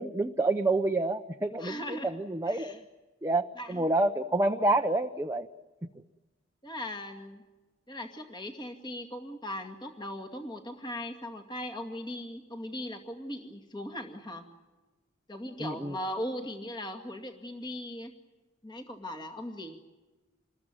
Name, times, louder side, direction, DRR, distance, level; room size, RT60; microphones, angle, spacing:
voice 1, 0.0-2.8 3.2-5.5 15.6-16.0, right 2 dB, 15° right, 4 dB, 0.8 m, -28 dB
voice 2, 1.6-2.1 2.5-2.8 3.6-3.9 6.6-7.4 7.9-14.4 15.3-18.1 18.6-19.8, left 1 dB, 25° left, 5 dB, 2.2 m, -39 dB
27.5 x 21.0 x 9.1 m, 1.2 s
head